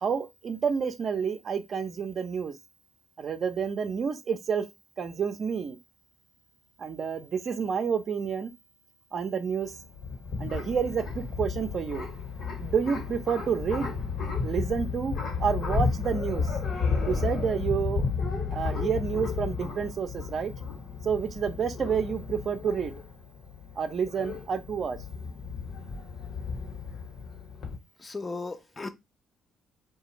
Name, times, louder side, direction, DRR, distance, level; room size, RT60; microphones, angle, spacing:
voice 1, 0.0-2.5 3.2-4.6 5.0-5.8 6.8-8.5 9.1-9.7 10.4-12.1 12.6-13.9 14.4-16.5 17.1-18.1 18.5-20.5 21.0-22.9 23.8-25.0, right 6 dB, 55° right, 0.5 m, -29 dB
sound 1, 9.6-27.7, left 5 dB, 65° left, 1.1 m, -33 dB
voice 2, 28.0-28.9, left 3 dB, 30° left, 0.5 m, -36 dB
2.4 x 2.3 x 2.9 m
supercardioid pair, 65°, 0 cm